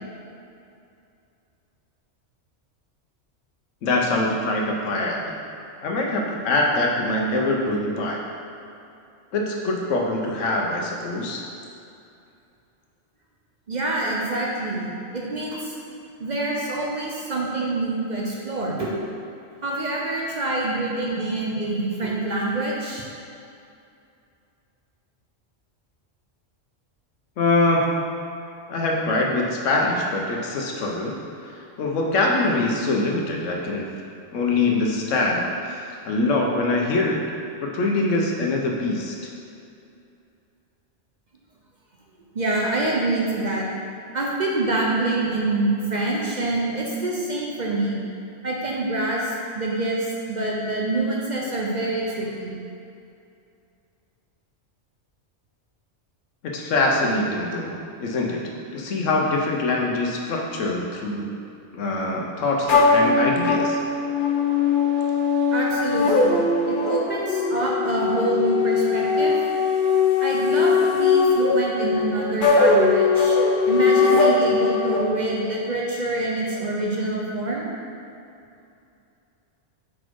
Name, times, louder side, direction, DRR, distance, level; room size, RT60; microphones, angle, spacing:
voice 1, 3.8-5.3 5.8-8.2 9.3-11.5 27.4-28.1 28.7-31.2 31.5-33.9 34.3-37.2 37.6-39.2 56.4-61.3 61.7-63.8, left 2 dB, 85° left, 0 dB, 1.1 m, -24 dB
voice 2, 13.7-15.7 16.2-18.9 19.6-23.1 42.3-43.7 44.1-48.0 48.4-52.5 65.5-69.3 70.2-73.4 73.7-77.7, right 2 dB, 45° right, -3 dB, 0.7 m, -26 dB
sound 1, 62.7-75.0, left 4 dB, 50° left, 0.7 m, -20 dB
4.9 x 4.1 x 4.6 m, 2.6 s
omnidirectional pair, 1.3 m